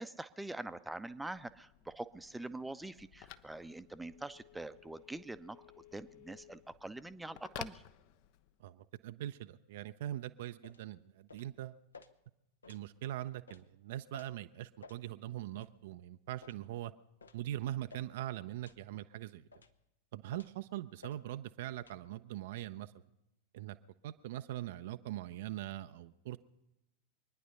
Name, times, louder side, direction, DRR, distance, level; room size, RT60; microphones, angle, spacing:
voice 1, 0.0-7.8, right 2 dB, 5° right, 12 dB, 0.6 m, -44 dB
Telephone, 0.9-8.7, left 12 dB, 45° left, 0.6 m, -54 dB
voice 2, 8.6-11.8 12.7-16.9 17.3-19.5 20.1-22.9 23.5-23.8 24.0-26.4, right 13 dB, 55° right, 10 dB, 0.5 m, -42 dB
sound 1, 10.6-10.8 11.3-11.5 11.9-12.1 12.6-12.8 13.5-13.6 14.1-14.3 14.8-15.0 15.5-15.7 16.4-16.6 17.2-17.4 17.9-18.1 18.6-18.8 19.5-19.8 20.3-20.6 21.0-21.2 21.8-22.0, left 4 dB, 75° left, 0.8 m, -55 dB
24.5 x 10.0 x 5.4 m, 0.89 s
figure-of-eight pair, 90°, 0 cm